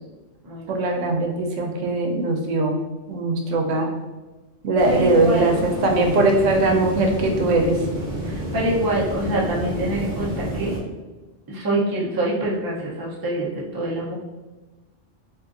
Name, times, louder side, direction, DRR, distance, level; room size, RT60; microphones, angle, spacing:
voice 1, 0.7-2.8 3.1-3.9 4.6-7.8, right 2 dB, 90° right, 2 dB, 1.0 m, -20 dB
sound 1, 4.8-10.8, right 1 dB, 45° right, 0.9 m, -29 dB
voice 2, 4.9-5.6 8.2-10.7 11.5-14.1, right 1 dB, 25° right, -5 dB, 0.5 m, -25 dB
3.7 x 2.4 x 2.4 m, 1.2 s
omnidirectional pair, 1.2 m